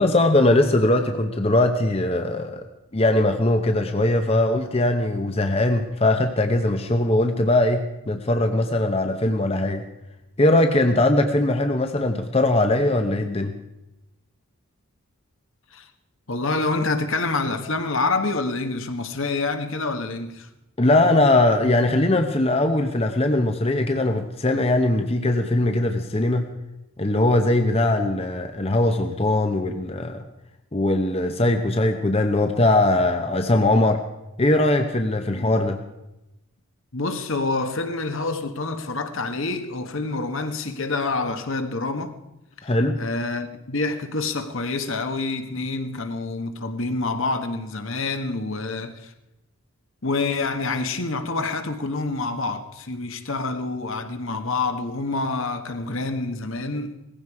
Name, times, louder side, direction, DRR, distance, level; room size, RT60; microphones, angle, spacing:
voice 1, 0.0-2.6 2.9-9.8 10.4-13.5 20.8-26.5 27.0-30.2 30.7-34.0 34.4-35.8 42.6-43.0, left 1 dB, 25° left, 0.8 m, -20 dB
voice 2, 16.3-20.5 35.3-35.5 36.9-42.1 42.6-42.7 43.0-49.1 50.0-57.0, left 3 dB, 60° left, 1.3 m, -27 dB
18.5 x 15.5 x 4.8 m
head